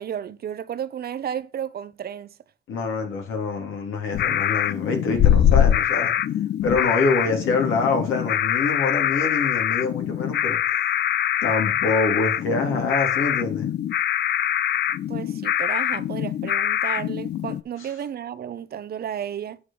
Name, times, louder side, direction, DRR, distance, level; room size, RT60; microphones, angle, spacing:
voice 1, 0.0-2.4 15.1-19.6, right 9 dB, 50° right, 0.7 m, -32 dB
voice 2, 2.7-6.1 6.6-10.8 11.4-13.7, left 4 dB, 85° left, 2.5 m, -25 dB
sound 1, 4.1-17.6, left 10 dB, 60° left, 0.5 m, -23 dB
8.6 x 4.9 x 5.4 m
cardioid pair, 90°, 20 cm